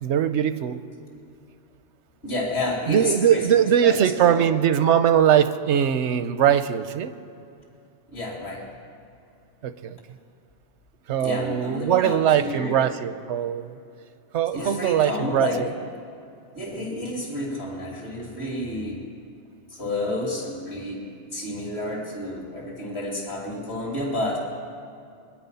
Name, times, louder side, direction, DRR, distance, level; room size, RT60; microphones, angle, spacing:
voice 1, 0.0-0.8 2.9-7.1 9.6-10.0 11.1-13.8 14.3-15.7, right 9 dB, 85° right, 11 dB, 1.0 m, -21 dB
voice 2, 2.2-4.6 8.1-8.7 11.2-12.8 14.5-15.6 16.5-19.0 19.7-21.1 21.3-24.5, left 1 dB, 65° left, -2 dB, 3.3 m, -30 dB
23.0 x 9.9 x 5.6 m, 2.5 s
omnidirectional pair, 1.2 m